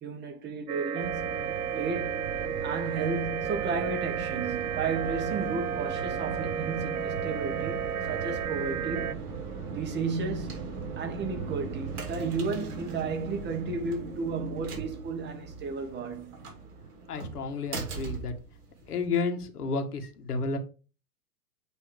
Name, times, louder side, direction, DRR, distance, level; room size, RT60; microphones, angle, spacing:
voice 1, 0.0-2.3 2.6-9.2 9.7-16.4, right 4 dB, 25° right, 1.4 m, -33 dB
sound 1, 0.7-9.1, right 8 dB, 70° right, 0.8 m, -33 dB
sound 2, 1.0-19.1, right 4 dB, 40° right, 2.6 m, -39 dB
voice 2, 17.1-18.3 18.9-20.6, left 4 dB, 80° left, 1.5 m, -31 dB
8.3 x 3.0 x 4.7 m
hypercardioid pair, 110°, 45 cm